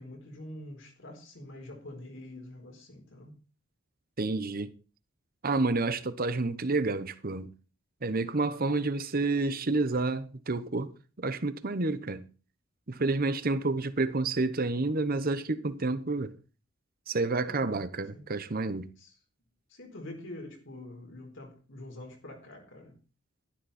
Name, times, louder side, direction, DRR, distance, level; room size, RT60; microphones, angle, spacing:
voice 1, 0.0-3.3 17.4-17.8 18.1-18.2 19.0-19.1 19.7-22.9, left 1 dB, 65° left, 4.2 m, -45 dB
voice 2, 4.2-4.7 5.4-7.5 8.0-10.9 11.2-12.3 12.9-16.4 17.1-18.9, right 3 dB, 45° right, 0.9 m, -29 dB
12.5 x 11.5 x 4.3 m
head